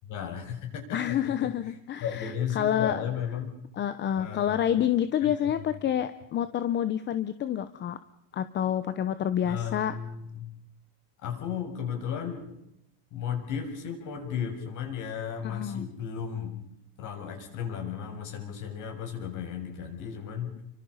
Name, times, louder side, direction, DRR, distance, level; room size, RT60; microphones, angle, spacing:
voice 1, 0.0-3.6 4.2-4.9 5.2-5.3 5.7-5.8 9.4-10.5 11.2-12.5 13.1-16.6 17.0-20.6, left 7 dB, 40° left, 4 dB, 7.0 m, -35 dB
voice 2, 0.9-3.0 3.8-8.0 8.3-9.9 15.4-15.9, left 10 dB, 25° left, 12 dB, 0.9 m, -28 dB
30.0 x 24.5 x 5.6 m, 0.82 s
cardioid pair, 170°, 45 cm